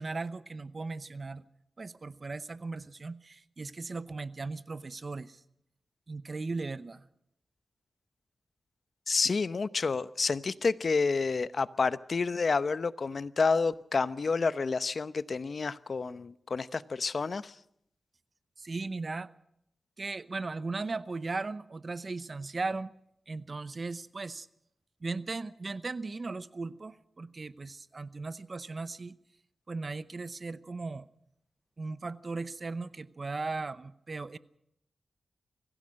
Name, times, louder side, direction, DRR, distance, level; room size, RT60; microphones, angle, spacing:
voice 1, 0.0-1.4 1.8-5.4 6.1-7.0 18.6-19.3 20.0-22.9 23.3-24.5 25.0-29.2 29.7-31.1 31.8-34.4, right 3 dB, 45° right, 15 dB, 0.8 m, -37 dB
voice 2, 9.1-17.5, left 4 dB, 60° left, 15 dB, 0.8 m, -29 dB
25.0 x 16.5 x 6.4 m, 0.75 s
cardioid pair, 70°, 0 cm